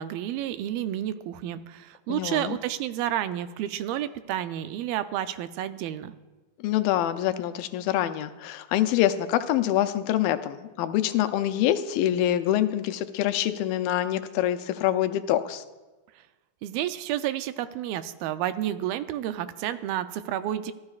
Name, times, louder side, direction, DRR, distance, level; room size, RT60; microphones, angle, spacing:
voice 1, 0.0-6.1 16.6-20.7, right 12 dB, 85° right, 11 dB, 2.5 m, -30 dB
voice 2, 2.1-2.6 6.6-15.6, left 12 dB, 85° left, 10 dB, 2.4 m, -25 dB
24.0 x 14.5 x 2.4 m, 1.2 s
omnidirectional pair, 4.1 m